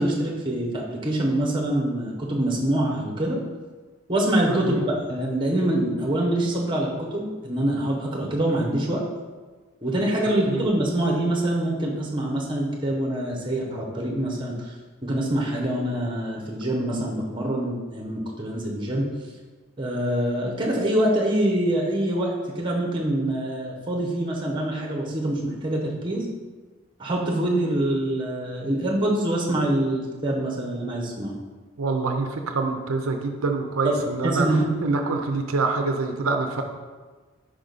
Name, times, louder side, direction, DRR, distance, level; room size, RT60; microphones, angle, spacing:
voice 1, 0.0-3.4 4.1-4.8 5.1-9.0 9.8-14.7 15.0-19.1 19.8-26.3 27.0-31.4 33.8-34.7, right 1 dB, 25° right, -1 dB, 0.9 m, -25 dB
voice 2, 4.5-4.9 10.3-10.7 31.8-36.6, right 3 dB, 85° right, 5 dB, 0.5 m, -26 dB
5.0 x 4.9 x 3.9 m, 1.4 s
head